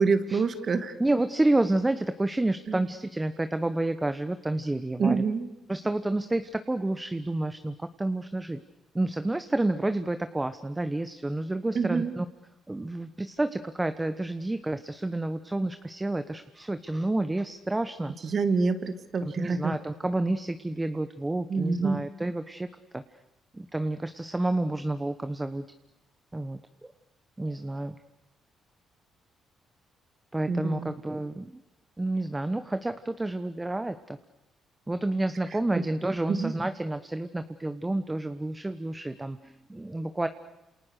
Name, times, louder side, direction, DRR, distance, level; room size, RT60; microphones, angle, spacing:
voice 1, 0.0-1.0 2.7-2.8 5.0-5.5 11.7-12.2 18.2-19.8 21.5-22.0 30.5-30.9 36.3-36.5, right 4 dB, 50° right, 9 dB, 2.5 m, -26 dB
voice 2, 1.0-5.2 5.7-8.6 8.9-12.2 12.7-18.1 19.2-22.7 22.9-23.0 23.5-25.6 26.3-26.9 27.4-27.9 30.3-31.5 32.0-34.2 34.9-40.3, right 2 dB, 15° right, 10 dB, 1.1 m, -29 dB
28.5 x 28.0 x 6.6 m, 0.94 s
cardioid pair, 90°, 0 cm